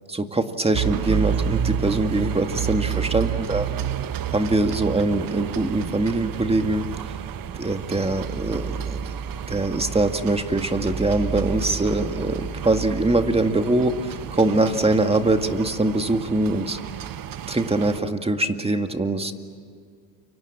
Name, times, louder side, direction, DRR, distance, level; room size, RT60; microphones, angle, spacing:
voice 1, 0.1-3.7 4.3-6.8 7.6-9.2 9.5-16.8 17.5-19.3, right 2 dB, 15° right, 7 dB, 2.0 m, -23 dB
sound 1, 0.7-18.0, right 8 dB, 45° right, 1.3 m, -30 dB
29.5 x 25.0 x 7.4 m, 2.2 s
supercardioid pair, 90°, 45 cm